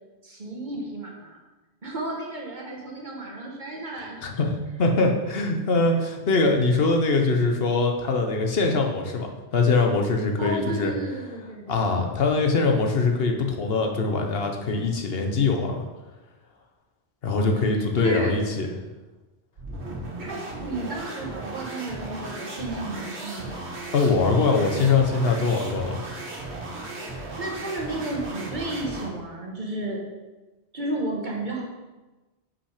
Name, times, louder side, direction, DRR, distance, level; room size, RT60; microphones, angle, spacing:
voice 1, 0.2-1.4 1.8-4.2 10.4-11.8 17.6-18.4 20.2-23.6 27.0-30.0 30.7-31.6, right 2 dB, 45° right, -1 dB, 1.4 m, -32 dB
voice 2, 4.2-10.9 11.7-15.8 17.2-18.7 23.9-26.0, left 3 dB, 65° left, 3 dB, 1.1 m, -23 dB
sound 1, 19.6-29.2, right 2 dB, 90° right, 1.6 m, -36 dB
5.7 x 5.6 x 4.9 m, 1.2 s
omnidirectional pair, 1.1 m